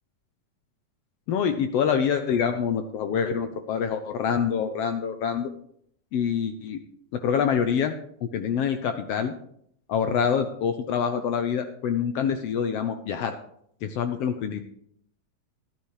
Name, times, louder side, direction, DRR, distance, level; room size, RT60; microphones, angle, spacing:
voice 1, 1.3-5.5 6.1-6.8 7.1-7.9 8.2-9.3 9.9-13.4 13.8-14.6, left 7 dB, 80° left, 7 dB, 1.4 m, -26 dB
13.0 x 12.5 x 3.3 m, 0.69 s
omnidirectional pair, 3.6 m